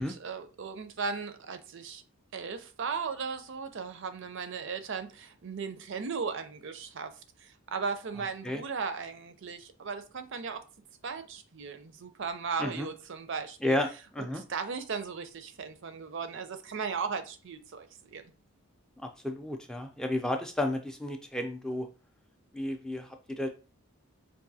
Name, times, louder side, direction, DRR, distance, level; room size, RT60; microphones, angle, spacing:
voice 1, 0.0-2.0 2.3-7.1 7.4-10.6 11.0-13.8 14.3-18.3, right 5 dB, 60° right, 0.5 m, -37 dB
voice 2, 19.0-21.9 22.5-23.5, left 1 dB, 5° left, 0.3 m, -32 dB
4.7 x 2.6 x 2.7 m
head